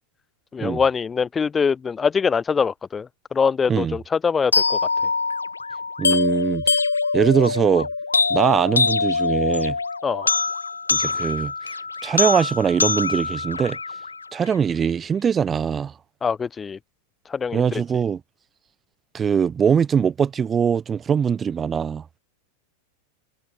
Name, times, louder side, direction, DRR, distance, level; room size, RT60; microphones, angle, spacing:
voice 1, 0.5-4.8 10.0-10.3 16.2-16.8 17.3-17.8, left 6 dB, 15° left, 0.6 m, -23 dB
sound 1, 4.5-14.5, left 4 dB, 75° left, 1.2 m, -24 dB
voice 2, 6.0-6.8 7.1-7.9 8.3-9.8 10.9-11.5 12.0-13.8 14.3-15.9 17.5-18.2 19.1-22.0, right 7 dB, 20° right, 1.0 m, -21 dB
figure-of-eight pair, 90°, 0 cm